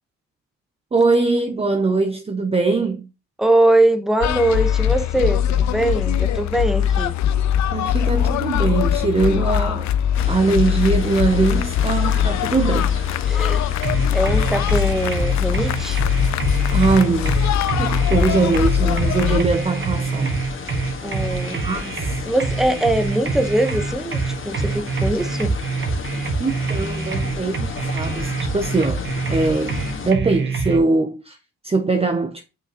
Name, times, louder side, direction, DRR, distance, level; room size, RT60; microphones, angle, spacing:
voice 1, 0.9-3.1 7.7-9.9 10.3-13.0 16.7-17.3 17.8-20.3 21.5-22.2 26.4-31.4 31.6-32.4, right 3 dB, 20° right, 0.7 m, -21 dB
voice 2, 3.4-7.1 13.3-13.7 14.1-16.0 21.0-21.6 22.3-24.2 24.4-25.5, right 1 dB, ahead, 1.1 m, -21 dB
sound 1, 4.2-19.4, left 9 dB, 65° left, 0.6 m, -21 dB
sound 2, 10.1-30.1, left 4 dB, 45° left, 1.6 m, -34 dB
sound 3, 13.8-30.8, right 4 dB, 40° right, 1.6 m, -25 dB
7.1 x 5.6 x 3.0 m
cardioid pair, 90°, 30 cm